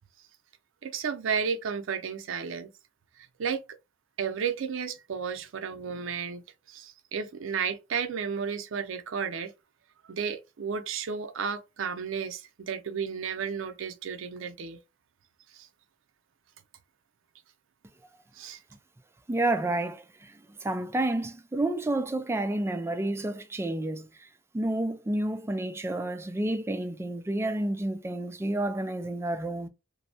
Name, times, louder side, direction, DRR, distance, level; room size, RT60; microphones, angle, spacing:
voice 1, 0.8-2.7 3.2-3.6 4.2-9.5 10.1-14.8 15.5-15.7 18.3-18.6, right 6 dB, 75° right, 0.5 m, -33 dB
voice 2, 19.3-24.3 24.5-29.7, right 1 dB, 15° right, 0.3 m, -30 dB
2.6 x 2.1 x 2.6 m
head